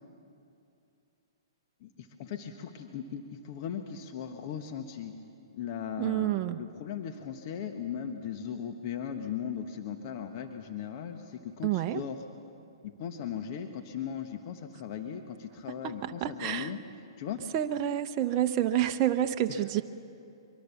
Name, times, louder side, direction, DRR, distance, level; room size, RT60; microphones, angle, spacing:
voice 1, 1.8-5.1 5.5-12.2 12.8-16.8 17.2-17.4 19.5-19.6, left 8 dB, 45° left, 6 dB, 1.3 m, -38 dB
voice 2, 6.0-6.6 11.6-12.0 15.8-16.7 17.5-19.8, right 12 dB, 35° right, 6 dB, 0.8 m, -28 dB
23.5 x 23.0 x 7.1 m, 2.6 s
hypercardioid pair, 130°, 3 cm